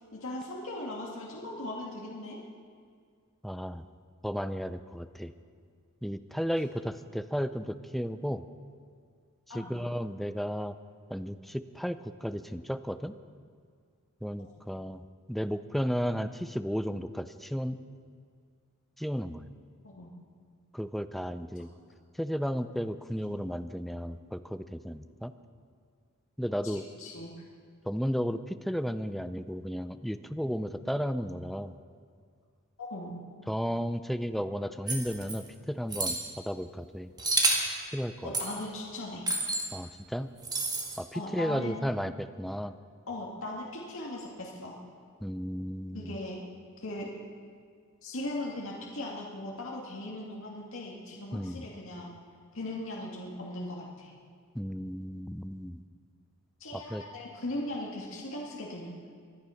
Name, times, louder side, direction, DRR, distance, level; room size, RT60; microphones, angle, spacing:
voice 1, 0.1-2.4 9.5-9.8 19.8-20.1 23.2-23.4 26.7-27.3 32.8-33.2 38.2-39.3 41.1-41.8 43.1-44.7 45.9-46.4 46.8-47.1 48.0-52.1 52.5-54.1 56.6-59.1, left 1 dB, 65° left, -3 dB, 2.2 m, -39 dB
voice 2, 3.4-3.8 4.2-5.3 6.0-8.4 9.5-10.8 11.1-13.1 14.2-15.0 15.3-17.8 19.0-19.5 20.7-21.7 22.2-25.3 26.4-26.8 27.9-31.7 33.5-36.2 36.4-37.1 37.9-38.3 39.7-40.3 41.0-42.7 45.2-46.2 51.3-51.7 54.5-55.8 56.7-57.0, equal, ahead, 11 dB, 0.5 m, -33 dB
sound 1, 34.9-35.4 35.9-36.2 37.2-37.7 38.3-38.5 39.3-39.7 40.4-41.0, right 3 dB, 20° right, 2.0 m, -29 dB
25.0 x 9.7 x 5.8 m, 2.1 s
head